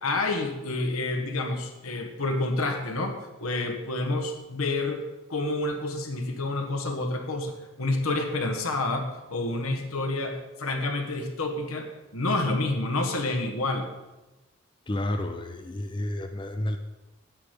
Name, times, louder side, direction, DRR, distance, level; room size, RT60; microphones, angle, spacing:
voice 1, 0.0-5.0 5.3-13.9, left 2 dB, 85° left, 4 dB, 1.4 m, -29 dB
voice 2, 14.9-16.8, left 1 dB, 20° left, 7 dB, 0.5 m, -30 dB
9.9 x 8.1 x 5.1 m, 1.1 s
head